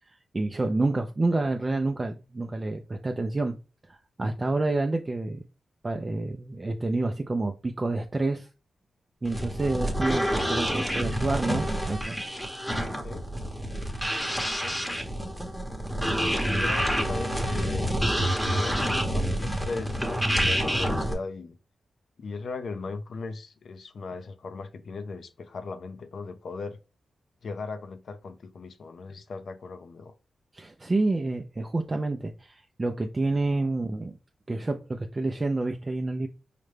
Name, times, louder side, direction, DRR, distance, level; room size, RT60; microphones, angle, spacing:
voice 1, 0.1-3.6 3.9-5.4 5.8-8.5 9.2-12.2 16.0-16.1 30.5-34.2 34.5-36.3, right 2 dB, 30° right, 0.4 m, -28 dB
sound 1, 9.3-21.1, equal, 5° left, 0.9 m, -28 dB
voice 2, 16.5-21.6 22.2-26.8 27.4-30.1, left 4 dB, 65° left, 0.5 m, -38 dB
4.8 x 2.1 x 3.3 m
cardioid pair, 80°, 0 cm